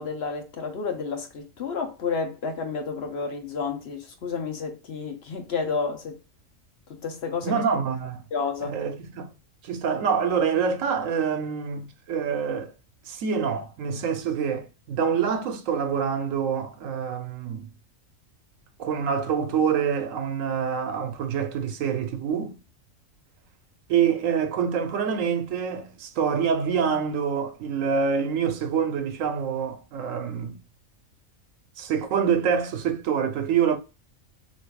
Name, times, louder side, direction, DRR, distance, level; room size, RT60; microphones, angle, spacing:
voice 1, 0.0-6.2 6.9-7.6 8.3-8.7, left 5 dB, 55° left, 0.9 m, -30 dB
voice 2, 7.4-8.2 8.6-9.3 9.6-12.7 13.1-17.7 18.8-22.6 23.9-30.6 31.8-33.8, right 7 dB, 75° right, 1.1 m, -26 dB
6.1 x 2.5 x 2.3 m
omnidirectional pair, 1.4 m